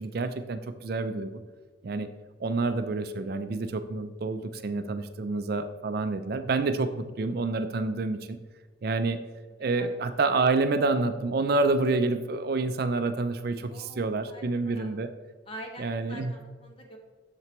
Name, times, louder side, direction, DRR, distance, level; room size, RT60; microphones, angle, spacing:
voice 1, 0.0-1.4 1.8-2.1 2.4-8.4 8.8-9.2 9.6-15.1 15.8-16.3, right 3 dB, 50° right, 9 dB, 0.4 m, -28 dB
voice 2, 13.7-14.9 15.5-17.0, equal, 30° left, 1 dB, 1.1 m, -45 dB
7.6 x 6.7 x 3.0 m, 1.4 s
head